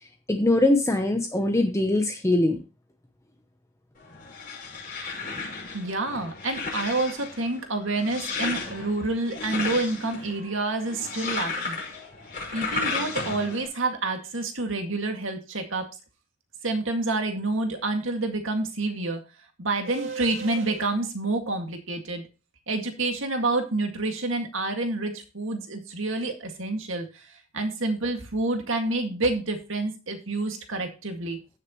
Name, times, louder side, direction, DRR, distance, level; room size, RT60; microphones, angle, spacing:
voice 1, 0.3-2.6, left 1 dB, 15° left, 4 dB, 0.9 m, -22 dB
sound 1, 4.0-13.7, left 3 dB, 40° left, 5.6 m, -34 dB
voice 2, 5.7-11.8 12.5-15.9 16.6-19.2 19.6-22.3 22.7-31.4, right 2 dB, 65° right, 4 dB, 2.1 m, -28 dB
15.5 x 6.7 x 3.1 m, 0.32 s
head